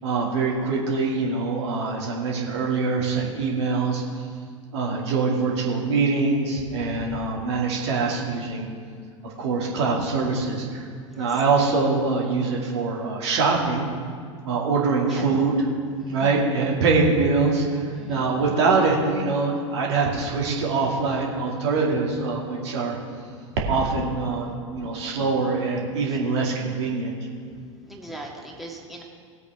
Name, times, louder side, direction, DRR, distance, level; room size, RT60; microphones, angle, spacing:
voice 1, 0.0-4.0 4.7-8.7 9.4-10.9 11.2-13.9 14.4-15.6 16.1-17.8 18.1-23.0 23.7-27.1, right 4 dB, 60° right, -1 dB, 2.3 m, -24 dB
voice 2, 17.9-18.3 24.8-24.9 27.5-29.0, right 1 dB, ahead, -2 dB, 1.9 m, -41 dB
18.5 x 8.1 x 3.6 m, 2.1 s
figure-of-eight pair, 90°, 16 cm